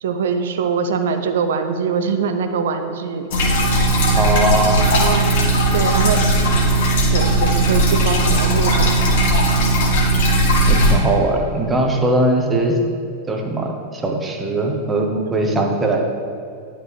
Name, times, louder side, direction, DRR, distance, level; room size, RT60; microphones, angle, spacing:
voice 1, 0.0-3.3 4.9-5.3 5.7-6.2 7.1-9.0 15.1-15.3, right 6 dB, 60° right, 8 dB, 0.6 m, -23 dB
sound 1, 3.3-10.9, right 1 dB, 55° left, 1.6 m, -17 dB
voice 2, 4.1-4.9 10.7-12.8 13.3-16.1, right 2 dB, 15° right, 2 dB, 1.0 m, -20 dB
10.5 x 4.4 x 3.5 m, 2.4 s
figure-of-eight pair, 90°, 0 cm